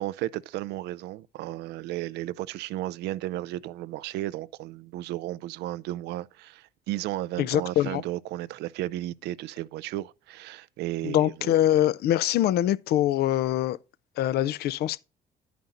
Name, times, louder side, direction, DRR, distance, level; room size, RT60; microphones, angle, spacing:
voice 1, 0.0-11.5, right 15 dB, 80° right, 0.5 m, -34 dB
voice 2, 7.4-8.0 11.0-13.8 14.2-15.0, left 12 dB, 70° left, 0.5 m, -24 dB
10.5 x 9.2 x 2.5 m
cardioid pair, 110°, 17 cm